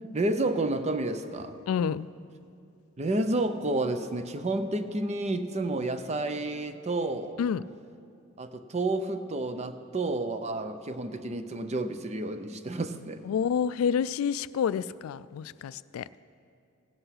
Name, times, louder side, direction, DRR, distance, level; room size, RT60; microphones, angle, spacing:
voice 1, 0.1-1.6 3.0-7.4 8.4-13.2, right 2 dB, 35° right, 9 dB, 0.6 m, -30 dB
voice 2, 1.7-2.1 7.4-7.6 13.2-16.1, left 7 dB, 80° left, 16 dB, 0.3 m, -28 dB
16.5 x 7.9 x 5.8 m, 2.5 s
head